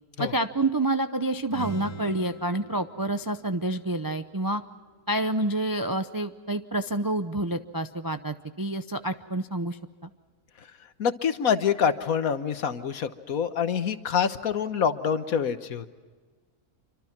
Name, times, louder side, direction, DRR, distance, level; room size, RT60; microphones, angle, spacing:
voice 1, 0.2-4.6 5.1-10.1, right 2 dB, 30° right, 8 dB, 0.3 m, -28 dB
sound 1, 1.4-5.2, right 2 dB, 10° left, 4.7 m, -43 dB
voice 2, 11.0-15.9, left 7 dB, 65° left, 10 dB, 1.6 m, -26 dB
27.0 x 25.5 x 6.0 m, 1.4 s
omnidirectional pair, 1.6 m